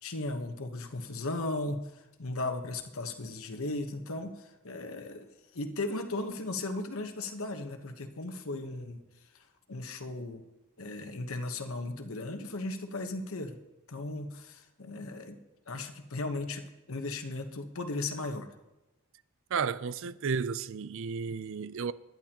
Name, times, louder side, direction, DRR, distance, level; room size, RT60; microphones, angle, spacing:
voice 1, 0.0-9.0 9.3-9.4 9.7-10.4 10.8-13.6 13.9-15.4 15.7-18.5, left 2 dB, 70° left, 1.1 m, -36 dB
voice 2, 19.5-21.9, right 5 dB, 60° right, 0.4 m, -33 dB
21.0 x 10.5 x 2.9 m
head